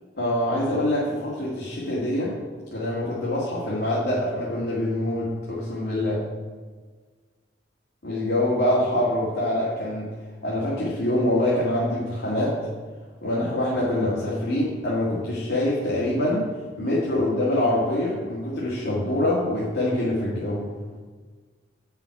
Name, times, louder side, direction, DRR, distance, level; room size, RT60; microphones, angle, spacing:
voice 1, 0.2-2.4 2.7-6.2 8.0-10.1 10.4-12.6 13.2-16.5 16.8-20.7, left 1 dB, 75° left, -7 dB, 2.0 m, -25 dB
8.3 x 5.8 x 5.9 m, 1.5 s
head